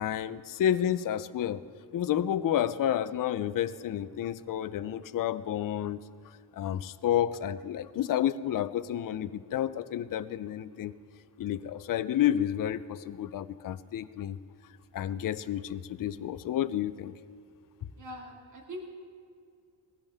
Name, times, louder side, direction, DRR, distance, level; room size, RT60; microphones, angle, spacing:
voice 1, 0.0-1.6 1.9-6.0 6.5-10.9 11.4-14.4 14.9-17.1, left 10 dB, 55° left, 13 dB, 0.6 m, -30 dB
voice 2, 18.0-18.8, equal, 45° right, 0 dB, 2.3 m, -42 dB
20.0 x 16.0 x 3.5 m, 2.3 s
wide cardioid pair, 135°, 41 cm